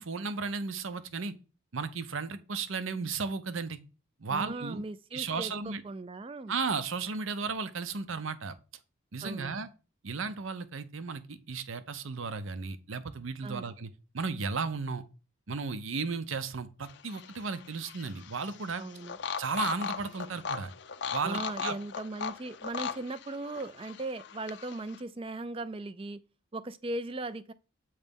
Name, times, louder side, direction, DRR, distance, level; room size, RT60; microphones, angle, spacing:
voice 1, 0.0-1.3 1.7-3.8 4.2-4.8 5.1-5.8 6.5-8.6 9.1-9.7 10.0-15.0 15.5-18.8 19.4-20.7 21.1-21.7, right 4 dB, 70° right, 0.7 m, -34 dB
voice 2, 4.3-6.5 9.2-9.6 13.4-13.6 18.8-19.2 21.2-26.2 26.5-27.5, right 2 dB, 25° right, 0.4 m, -38 dB
sound 1, 16.8-25.0, left 6 dB, 55° left, 0.5 m, -39 dB
8.2 x 3.2 x 5.2 m
head